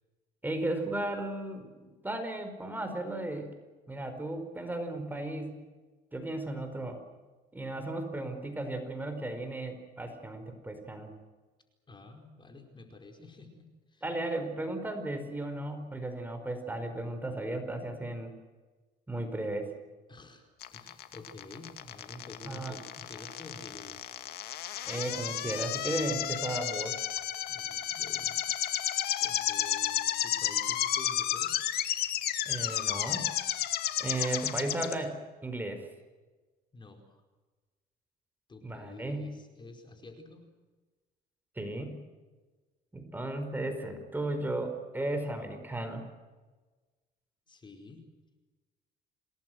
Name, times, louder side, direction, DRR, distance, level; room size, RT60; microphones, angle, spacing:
voice 1, 0.4-3.5 3.9-5.6 6.1-7.0 7.5-11.1 14.0-18.3 19.1-19.7 22.4-22.7 24.9-27.0 32.4-33.3 34.0-35.9 38.6-39.3 41.6-42.0 42.9-46.0, right 2 dB, 10° right, 6 dB, 4.8 m, -35 dB
voice 2, 11.9-14.0 20.1-20.5 20.7-24.0 27.5-28.4 28.7-28.9 29.2-31.6 36.7-37.2 38.5-40.5 47.5-48.0, left 2 dB, 30° left, 5 dB, 4.8 m, -49 dB
sound 1, 20.6-34.9, left 11 dB, 70° left, 2.3 m, -32 dB
28.0 x 19.0 x 7.9 m, 1.3 s
cardioid pair, 110°, 17 cm